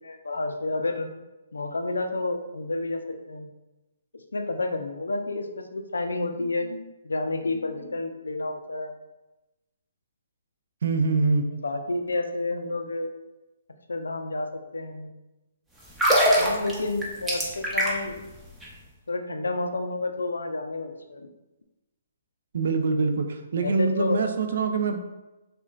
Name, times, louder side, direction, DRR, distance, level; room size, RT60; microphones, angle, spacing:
voice 1, 0.0-1.1 1.5-3.0 3.3-3.5 4.3-8.9 11.5-13.1 13.9-15.1 16.4-18.2 19.1-21.3 23.6-24.2, left 2 dB, 80° left, 6 dB, 0.3 m, -30 dB
voice 2, 10.8-11.4 22.5-25.0, right 4 dB, 65° right, 6 dB, 0.4 m, -24 dB
sound 1, 15.8-18.2 18.5-18.7, equal, 5° right, 0.6 m, -23 dB
3.7 x 2.2 x 2.3 m, 1.0 s
figure-of-eight pair, 135°, 0 cm